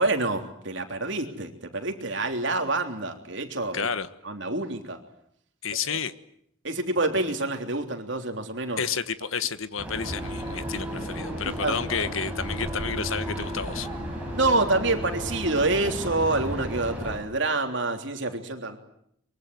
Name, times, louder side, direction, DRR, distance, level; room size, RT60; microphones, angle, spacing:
voice 1, 0.0-3.9 4.2-5.0 5.9-6.0 6.6-8.8 11.4-12.1 14.3-18.8, right 2 dB, 60° right, 5 dB, 3.5 m, -27 dB
voice 2, 3.7-4.1 5.6-6.1 8.8-13.9, left 6 dB, 75° left, 13 dB, 1.4 m, -30 dB
sound 1, 9.8-17.2, equal, 5° right, 7.9 m, -34 dB
Wind instrument woodwind instrument, 10.0-15.9, right 1 dB, 25° right, 2.9 m, -40 dB
24.0 x 23.0 x 9.5 m, 0.71 s
head